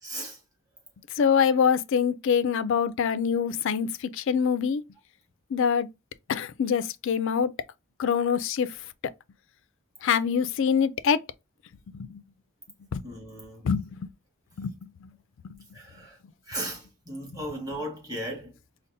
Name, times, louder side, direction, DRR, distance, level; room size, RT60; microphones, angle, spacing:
voice 1, 0.0-0.4 13.0-13.7 15.7-16.2 16.5-18.5, right 1 dB, 15° right, 1.6 m, -36 dB
voice 2, 1.2-3.9 4.2-4.8 5.5-5.9 6.3-7.5 8.0-8.7 10.0-11.2 11.9-12.2 12.9-13.0 13.6-13.8 14.6-14.7, left 7 dB, 55° left, 0.3 m, -24 dB
5.2 x 2.1 x 2.6 m
head